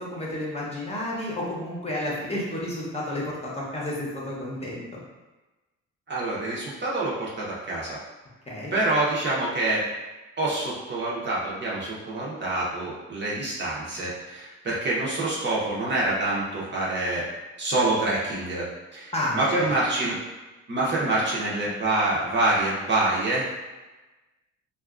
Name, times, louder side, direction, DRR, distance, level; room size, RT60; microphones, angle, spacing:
voice 1, 0.0-5.0 8.5-8.7 19.1-19.7, left 1 dB, 20° left, -5 dB, 0.8 m, -31 dB
voice 2, 6.1-8.0 8.7-9.8 10.4-17.2 17.6-20.2 20.7-23.4, right 2 dB, 35° right, -6 dB, 0.7 m, -26 dB
2.7 x 2.4 x 2.4 m, 1.1 s
cardioid pair, 90°, 30 cm